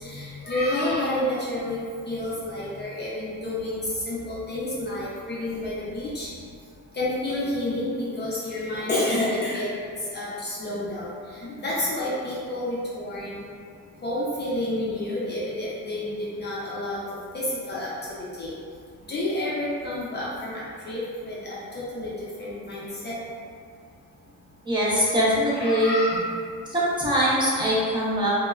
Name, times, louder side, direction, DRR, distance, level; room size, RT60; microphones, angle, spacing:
voice 1, 0.0-1.8 2.0-6.3 6.9-9.7 10.1-11.1 11.4-13.4 14.0-17.0 17.3-17.9 18.4-18.5 19.1-22.1 22.4-23.2 25.5-26.3, left 1 dB, 35° left, -7 dB, 0.4 m, -29 dB
voice 2, 24.7-25.9 26.7-28.3, equal, 15° right, -9 dB, 0.6 m, -22 dB
2.9 x 2.1 x 2.3 m, 2.2 s
cardioid pair, 120°, 32 cm